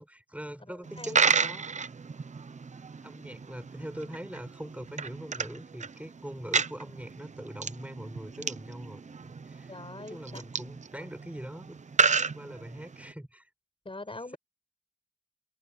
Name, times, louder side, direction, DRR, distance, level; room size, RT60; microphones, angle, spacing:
voice 1, 0.0-1.7 3.0-9.7 10.0-11.8 12.3-13.5, right 1 dB, 10° right, 7.0 m, -42 dB
voice 2, 0.7-1.2 9.7-10.4 11.0-11.1 13.9-14.4, left 2 dB, 50° left, 6.8 m, -43 dB
Coin (dropping), 0.8-13.1, right 5 dB, 90° right, 0.6 m, -32 dB
wide cardioid pair, 60°, 12 cm